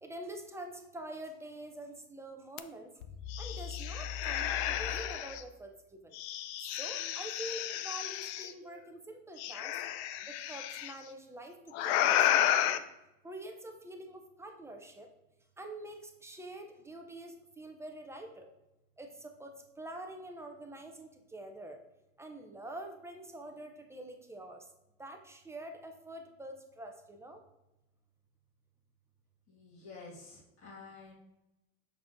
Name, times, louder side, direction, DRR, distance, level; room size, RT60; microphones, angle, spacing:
voice 1, 0.0-2.9 3.4-5.7 6.6-9.7 10.5-11.6 11.8-12.8 13.2-15.1 15.6-18.5 19.0-21.8 22.2-24.6 25.0-27.4, right 1 dB, 10° right, 3 dB, 0.5 m, -46 dB
sound 1, 2.6-2.7 3.0-5.4 6.1-8.5 9.4-10.9 11.7-12.8, left 11 dB, 65° left, 0.5 m, -32 dB
voice 2, 29.5-31.1, left 4 dB, 35° left, -6 dB, 1.7 m, -50 dB
7.0 x 6.1 x 2.5 m, 0.93 s
supercardioid pair, 135°, 35 cm